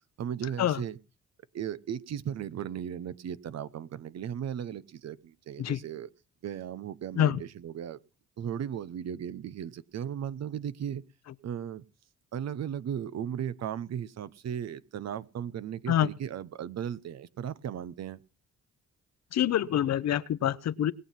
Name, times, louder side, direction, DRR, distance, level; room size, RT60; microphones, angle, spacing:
voice 1, 0.2-1.0 1.5-6.1 6.4-8.0 8.4-11.0 11.4-11.8 12.3-18.2, right 9 dB, 60° right, 0.9 m, -36 dB
voice 2, 19.3-20.9, left 11 dB, 60° left, 0.8 m, -26 dB
20.5 x 7.5 x 5.8 m
cardioid pair, 90°, 30 cm